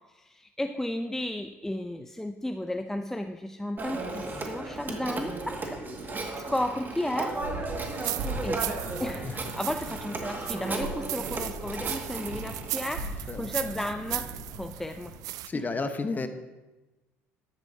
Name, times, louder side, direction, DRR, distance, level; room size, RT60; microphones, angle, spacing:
voice 1, 0.1-7.4 8.4-15.2 15.5-15.6, left 1 dB, 5° left, 7 dB, 0.6 m, -34 dB
Telephone, 3.8-12.9, right 3 dB, 30° right, 2.0 m, -35 dB
sound 1, 7.4-15.2, right 1 dB, 80° right, 2.2 m, -40 dB
sound 2, 7.8-15.5, right 15 dB, 60° right, 0.5 m, -37 dB
voice 2, 15.5-16.3, left 3 dB, 25° left, 8 dB, 1.2 m, -31 dB
13.5 x 10.5 x 2.8 m, 1.1 s
hypercardioid pair, 65°, 7 cm